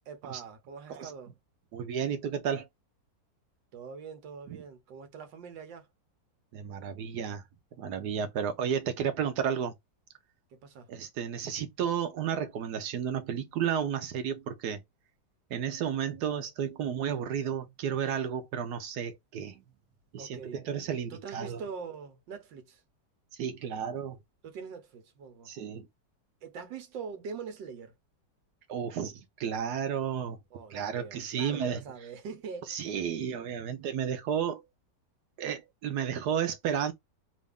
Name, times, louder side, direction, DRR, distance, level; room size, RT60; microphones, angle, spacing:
voice 1, 0.1-1.3 3.7-5.9 10.5-10.9 20.2-20.6 21.1-22.8 24.4-25.5 26.4-27.9 30.5-33.0 33.6-33.7, right 5 dB, 90° right, 1.6 m, -43 dB
voice 2, 1.7-2.7 4.5-4.6 6.5-7.4 7.8-9.7 10.9-14.8 15.5-19.6 20.1-21.6 23.4-24.2 25.5-25.9 28.7-30.4 30.7-31.8 32.7-34.6 35.4-36.9, right 8 dB, 70° right, 1.3 m, -32 dB
3.2 x 2.6 x 3.4 m
omnidirectional pair, 1.9 m